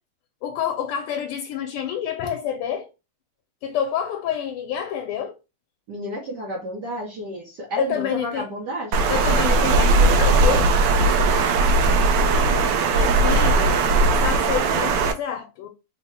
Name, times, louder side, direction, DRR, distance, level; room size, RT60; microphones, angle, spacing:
voice 1, 0.4-2.9 3.6-5.4 7.8-8.5 9.1-10.9 12.9-13.8 14.1-15.7, left 8 dB, 85° left, 1.5 m, -28 dB
voice 2, 5.9-9.0, equal, 60° right, 1.2 m, -31 dB
Water, 8.9-15.1, right 3 dB, 80° right, 1.0 m, -18 dB
3.8 x 2.1 x 4.1 m
omnidirectional pair, 2.4 m